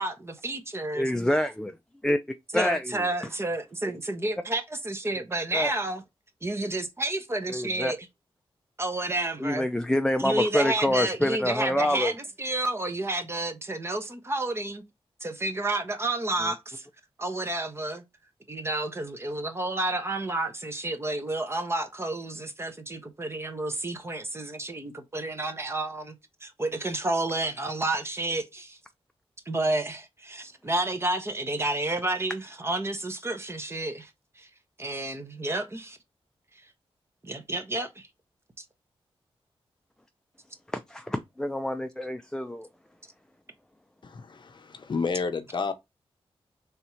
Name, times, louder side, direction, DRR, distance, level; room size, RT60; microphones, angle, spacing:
voice 1, 0.0-1.1 2.5-6.0 6.4-8.0 8.8-9.7 10.2-12.1 12.4-14.8 15.2-16.9 17.2-18.0 18.5-26.1 26.4-28.8 29.5-34.1 34.4-34.5 34.8-36.0 37.2-38.1, right 2 dB, 25° right, 0.8 m, -30 dB
voice 2, 1.0-1.8 2.0-3.1 5.5-5.7 7.5-7.9 9.4-12.1 16.4-16.5 40.7-42.7, left 1 dB, 5° left, 0.4 m, -27 dB
voice 3, 44.0-45.7, left 4 dB, 50° left, 0.7 m, -31 dB
3.5 x 2.7 x 4.3 m
wide cardioid pair, 105°, 10 cm